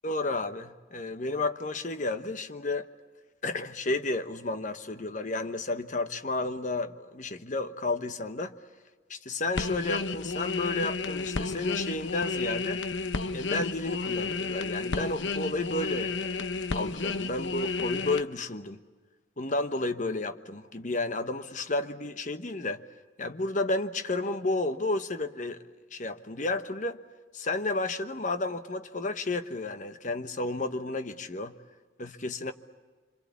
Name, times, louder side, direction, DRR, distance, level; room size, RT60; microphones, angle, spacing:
voice 1, 0.0-2.9 3.4-8.6 9.1-12.8 13.3-16.3 16.7-18.8 19.4-22.8 23.2-25.6 25.9-27.0 27.3-31.5 32.0-32.5, left 2 dB, 40° left, 9 dB, 1.1 m, -32 dB
sound 1, 9.5-18.2, left 4 dB, 75° left, 0.9 m, -32 dB
26.0 x 26.0 x 8.4 m, 1.4 s
head